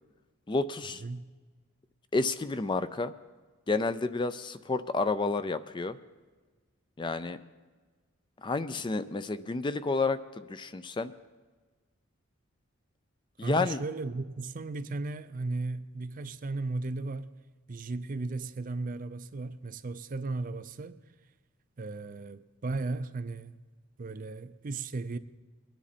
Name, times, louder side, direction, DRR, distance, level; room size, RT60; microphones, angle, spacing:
voice 1, 0.5-1.0 2.1-3.1 3.7-6.0 7.0-7.4 8.4-11.1 13.4-13.8, left 3 dB, 20° left, 0.4 m, -30 dB
voice 2, 13.4-17.3 17.7-21.0 21.8-23.6 24.0-25.2, right 3 dB, 40° right, 0.5 m, -35 dB
22.5 x 10.0 x 4.2 m
head